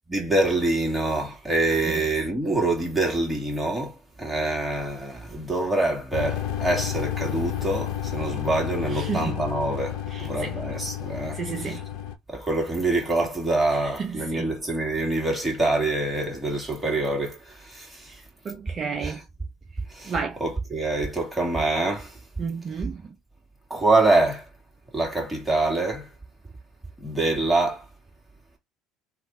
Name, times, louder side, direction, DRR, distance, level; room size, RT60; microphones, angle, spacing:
voice 1, 0.1-3.9 4.2-11.8 12.3-17.4 17.7-18.1 19.0-19.2 20.0-20.1 20.4-22.1 23.7-24.4 24.9-26.1 27.0-27.8, right 2 dB, 10° right, 1.8 m, -25 dB
sound 1, 6.1-12.2, left 11 dB, 65° left, 0.5 m, -31 dB
voice 2, 8.9-9.4 10.1-10.6 11.3-11.8 13.7-14.5 18.1-19.2 20.0-20.4 22.4-23.1, right 5 dB, 40° right, 0.6 m, -32 dB
3.1 x 2.4 x 4.1 m
hypercardioid pair, 65°, 0 cm